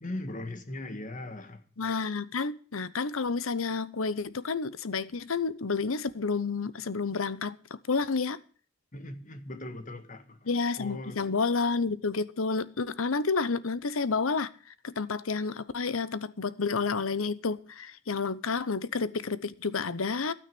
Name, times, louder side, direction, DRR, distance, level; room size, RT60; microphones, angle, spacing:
voice 1, 0.0-1.6 8.9-10.5 10.8-11.5, left 1 dB, 35° left, 1.7 m, -39 dB
voice 2, 1.8-7.6 7.9-8.4 10.5-14.5 14.8-20.3, left 4 dB, 80° left, 0.8 m, -30 dB
12.5 x 9.4 x 6.9 m
head